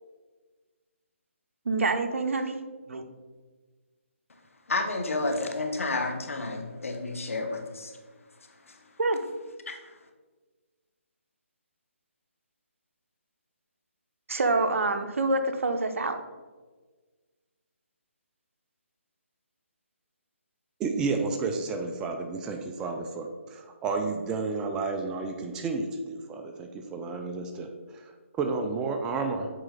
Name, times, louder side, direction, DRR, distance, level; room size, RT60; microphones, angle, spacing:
voice 1, 1.6-2.6 2.9-3.1 9.0-9.2 14.3-16.2, right 3 dB, 70° right, 7 dB, 0.8 m, -26 dB
voice 2, 4.7-7.9 8.7-8.8 9.7-9.9, left 2 dB, 75° left, 5 dB, 1.1 m, -31 dB
voice 3, 20.8-29.5, right 4 dB, 10° right, 4 dB, 0.3 m, -31 dB
7.7 x 4.2 x 3.9 m, 1.4 s
hypercardioid pair, 155°, 7 cm